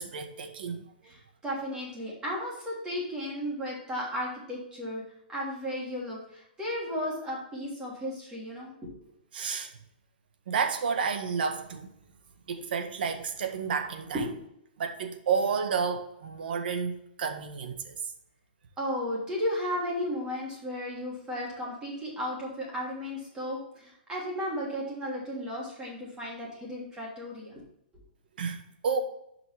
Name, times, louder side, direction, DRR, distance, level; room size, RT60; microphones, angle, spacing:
voice 1, 0.0-0.9 9.3-9.7 10.5-11.9 12.5-14.2 14.8-18.0 28.4-29.0, right 5 dB, 70° right, 1.6 m, -31 dB
voice 2, 1.0-5.0 5.3-8.9 14.1-14.2 18.8-27.6, equal, 15° right, 3.3 m, -34 dB
10.5 x 5.9 x 3.5 m
hypercardioid pair, 155°, 5 cm